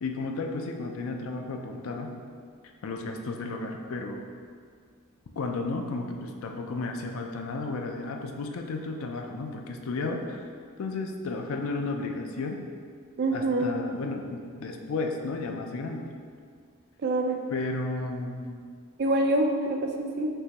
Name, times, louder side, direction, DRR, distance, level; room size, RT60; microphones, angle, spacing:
voice 1, 0.0-2.1 2.8-4.2 5.4-10.4 10.8-12.6 13.3-16.0 17.5-18.5, left 3 dB, 70° left, 3 dB, 0.4 m, -33 dB
voice 2, 13.2-13.7 17.0-17.4 19.0-20.3, right 2 dB, 50° right, 3 dB, 0.4 m, -25 dB
5.4 x 3.0 x 2.9 m, 2.1 s
head